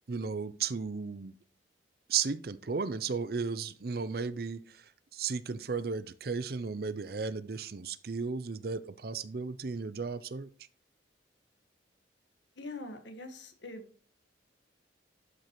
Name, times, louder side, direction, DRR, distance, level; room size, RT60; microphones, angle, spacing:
voice 1, 0.1-1.3 2.1-4.8 5.1-10.5, right 5 dB, 55° right, 0.5 m, -34 dB
voice 2, 12.6-13.8, left 2 dB, 75° left, 1.5 m, -43 dB
11.5 x 5.2 x 3.1 m
head